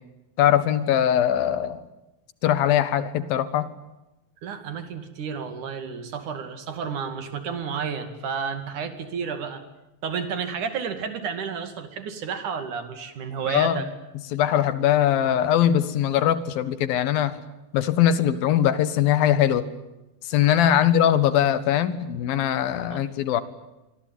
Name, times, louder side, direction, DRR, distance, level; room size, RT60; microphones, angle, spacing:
voice 1, 0.4-1.8 2.4-3.7 13.5-13.8 14.3-17.4 17.7-19.7 20.3-23.4, left 10 dB, 80° left, 14 dB, 3.3 m, -21 dB
voice 2, 4.4-9.6 10.0-13.9 20.7-20.9 22.9-23.0, right 6 dB, 60° right, 10 dB, 3.8 m, -31 dB
26.0 x 23.5 x 9.5 m, 0.97 s
omnidirectional pair, 4.1 m